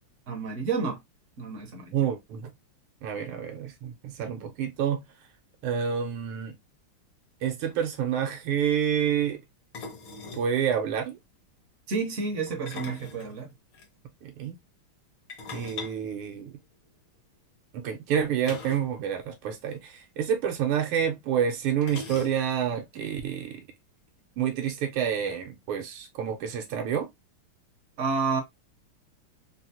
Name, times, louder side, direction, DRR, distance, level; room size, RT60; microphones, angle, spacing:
voice 1, 0.3-1.0 1.4-1.9 11.9-13.5 28.0-28.4, right 4 dB, 60° right, 0.8 m, -30 dB
voice 2, 1.9-2.5 3.0-5.0 5.6-6.5 7.4-9.4 10.3-11.2 14.2-14.6 15.5-16.6 17.7-23.6 24.4-27.1, right 8 dB, 80° right, 1.6 m, -28 dB
sound 1, 7.4-7.5 7.7-7.9 9.7-10.5 12.5-13.9 15.3-17.0 18.4-19.0 19.2-19.3 19.6-19.8 20.8-20.9 21.8-22.7, left 4 dB, 70° left, 1.7 m, -41 dB
4.3 x 2.0 x 2.7 m
omnidirectional pair, 2.4 m